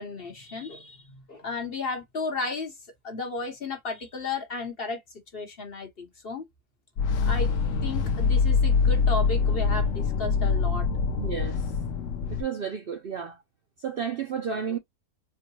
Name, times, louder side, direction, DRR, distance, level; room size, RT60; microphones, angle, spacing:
voice 1, 0.0-2.8 3.0-5.0 5.3-6.4 7.2-7.5 7.8-10.9, left 3 dB, 45° left, 1.1 m, -34 dB
sound 1, 7.0-12.4, left 5 dB, 65° left, 0.9 m, -24 dB
voice 2, 11.2-11.8 12.3-13.4 13.8-14.8, right 7 dB, 75° right, 0.5 m, -32 dB
4.6 x 2.1 x 2.9 m
omnidirectional pair, 1.5 m